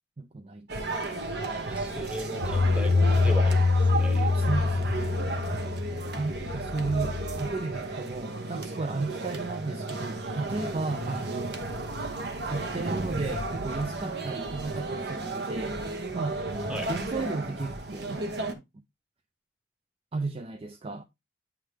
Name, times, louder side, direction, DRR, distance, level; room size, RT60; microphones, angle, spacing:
voice 1, 0.2-1.0 2.0-2.6 4.3-5.2 6.1-11.6 12.5-15.8 16.1-16.5 16.9-18.2 20.1-21.0, right 3 dB, 30° right, 0.4 m, -34 dB
sound 1, 0.7-18.6, right 2 dB, 60° right, 1.0 m, -33 dB
voice 2, 1.6-4.4 10.9-11.2 16.7-16.9, left 1 dB, 5° right, 1.0 m, -37 dB
sound 2, 2.4-7.5, left 3 dB, 60° left, 0.4 m, -25 dB
8.7 x 3.7 x 3.2 m
head